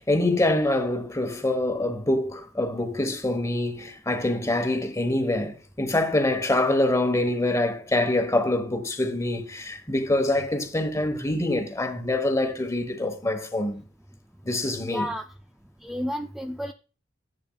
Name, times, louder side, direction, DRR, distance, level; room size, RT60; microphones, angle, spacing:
voice 1, 0.0-13.8 14.4-15.1, left 1 dB, 15° left, 1.1 m, -25 dB
voice 2, 14.8-15.2 15.8-16.7, equal, ahead, 0.3 m, -31 dB
10.5 x 8.3 x 2.3 m
head